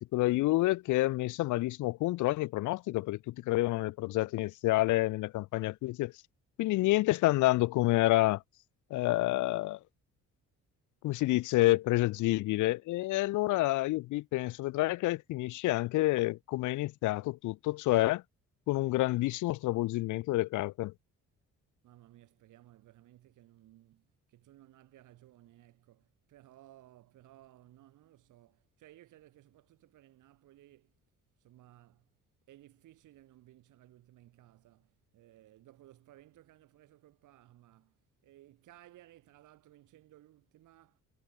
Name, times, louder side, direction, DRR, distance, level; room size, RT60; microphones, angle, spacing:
voice 1, 0.0-6.1 6.6-8.4 8.9-9.8 11.0-18.2 18.7-20.9, left 18 dB, 75° left, 0.5 m, -28 dB
voice 2, 21.8-31.0 31.4-32.1 32.5-41.0, right 14 dB, 85° right, 4.5 m, -59 dB
cardioid pair, 90°, 30 cm